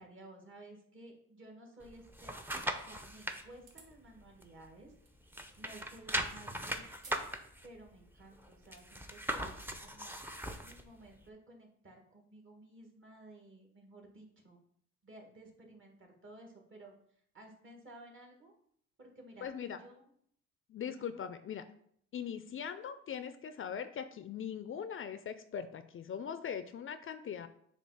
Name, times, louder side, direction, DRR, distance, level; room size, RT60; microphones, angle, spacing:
voice 1, 0.0-4.9 5.6-7.3 7.6-10.1 10.6-14.6 15.0-16.9 17.3-18.5 19.0-20.1 21.0-21.2, right 1 dB, 40° right, 1 dB, 1.7 m, -55 dB
sound 1, 1.8-3.4 3.9-5.0 5.3-10.8 11.3-11.4, right 1 dB, 5° right, 0.6 m, -39 dB
sound 2, 3.6-4.0 5.0-5.2 7.0-7.3 7.7-7.8 8.5-8.8, right 3 dB, 75° right, 1.7 m, -56 dB
voice 2, 19.4-19.8 20.7-21.6 22.1-27.5, left 8 dB, 45° left, 10 dB, 0.4 m, -41 dB
7.0 x 2.4 x 5.6 m, 0.66 s
cardioid pair, 90°, 30 cm